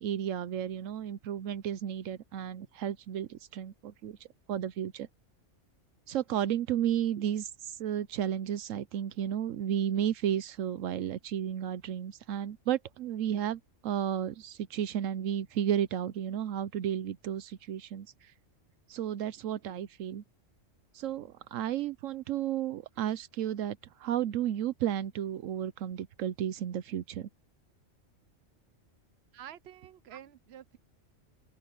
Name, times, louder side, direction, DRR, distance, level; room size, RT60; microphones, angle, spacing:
voice 1, 0.0-4.2 4.5-5.1 6.1-18.3 18.9-20.2 20.9-27.3, right 10 dB, 80° right, 1.0 m, -33 dB
voice 2, 29.3-30.8, right 10 dB, 55° right, 1.1 m, -49 dB
omnidirectional pair, 1.3 m